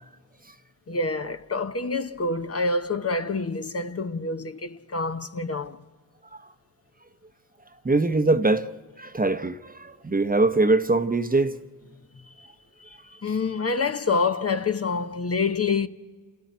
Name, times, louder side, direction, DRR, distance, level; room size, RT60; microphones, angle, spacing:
voice 1, 0.9-5.8 12.2-12.5 12.8-15.9, left 4 dB, 40° left, 0.9 m, -27 dB
voice 2, 7.8-8.7 9.0-11.6, right 3 dB, 25° right, 0.9 m, -22 dB
28.0 x 13.5 x 9.3 m
cardioid pair, 55°, 36 cm